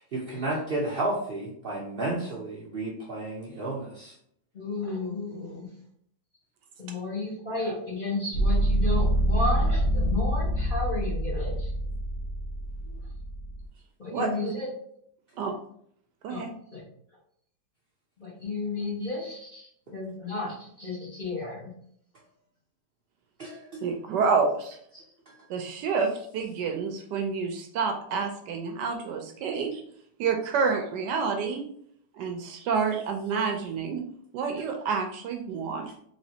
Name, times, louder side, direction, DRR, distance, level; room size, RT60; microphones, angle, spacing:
voice 1, 0.1-4.1 19.0-19.6 20.8-21.2 23.4-23.8 24.9-25.4, right 2 dB, 60° right, -5 dB, 0.6 m, -33 dB
voice 2, 4.5-5.7 6.8-11.7 12.8-12.9 14.0-14.7 16.3-16.4 16.7-16.8 18.2-19.5 19.9-21.7, left 2 dB, 30° left, -6 dB, 1.3 m, -33 dB
sound 1, 8.3-13.6, right 1 dB, 85° left, 1.5 m, -26 dB
voice 3, 14.1-14.5 15.4-15.5 16.2-16.5 23.8-24.8 25.5-29.8 30.2-31.6 32.2-34.0 34.3-35.9, right 5 dB, 75° right, 4 dB, 1.1 m, -28 dB
4.1 x 3.1 x 2.8 m, 0.67 s
omnidirectional pair, 2.0 m